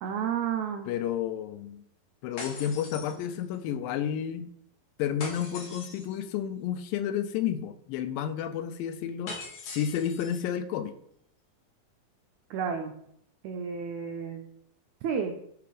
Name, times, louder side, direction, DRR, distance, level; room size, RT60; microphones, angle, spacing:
voice 1, 0.0-0.9 12.5-12.9 13.4-14.4 15.0-15.3, right 7 dB, 85° right, 4 dB, 1.6 m, -31 dB
voice 2, 0.9-1.8 2.2-4.5 5.0-9.4 9.8-10.9, left 9 dB, 80° left, 10 dB, 2.2 m, -31 dB
sound 1, 2.4-3.7 5.2-6.2 9.3-10.4, left 3 dB, 55° left, 2.4 m, -42 dB
9.5 x 3.4 x 4.9 m, 0.69 s
omnidirectional pair, 4.2 m